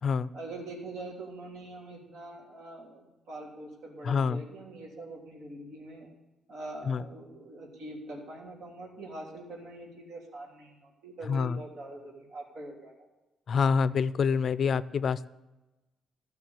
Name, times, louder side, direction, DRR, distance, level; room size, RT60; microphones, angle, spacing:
voice 1, 0.3-6.1 6.5-13.1, right 2 dB, 80° right, -2 dB, 3.2 m, -43 dB
voice 2, 4.0-4.4 6.9-7.0 11.3-11.6 13.5-15.3, left 5 dB, 45° left, 17 dB, 0.4 m, -26 dB
16.0 x 6.0 x 8.5 m, 1.1 s
cardioid pair, 145°, 0 cm